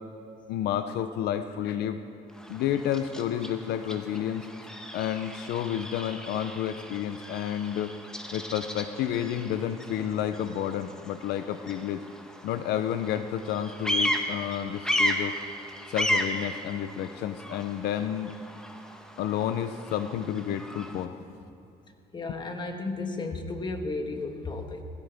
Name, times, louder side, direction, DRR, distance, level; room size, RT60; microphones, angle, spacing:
voice 1, 0.5-2.0 2.5-4.5 4.9-7.9 8.3-12.0 12.4-15.3 15.9-18.3 19.2-21.1, left 10 dB, 80° left, 10 dB, 0.6 m, -30 dB
Bird vocalization bird call bird song, 2.3-21.1, equal, 5° left, 1.1 m, -35 dB
voice 2, 22.1-24.8, left 3 dB, 25° left, 5 dB, 1.5 m, -33 dB
19.5 x 16.5 x 3.5 m, 2.5 s
cardioid pair, 110°, 17 cm